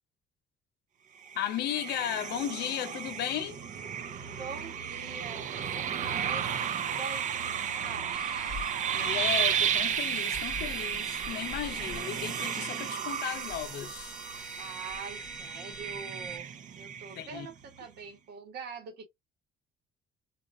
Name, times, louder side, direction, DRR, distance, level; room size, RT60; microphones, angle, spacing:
sound 1, 1.2-17.5, right 8 dB, 50° right, 0.7 m, -33 dB
voice 1, 1.3-3.6 8.9-14.2 17.2-17.5, left 11 dB, 75° left, 0.8 m, -35 dB
voice 2, 4.4-8.2 14.6-16.5 16.8-19.1, right 5 dB, 70° right, 1.6 m, -44 dB
sound 2, 8.1-16.4, left 2 dB, 5° right, 0.8 m, -45 dB
4.1 x 2.4 x 2.6 m
cardioid pair, 110°, 17 cm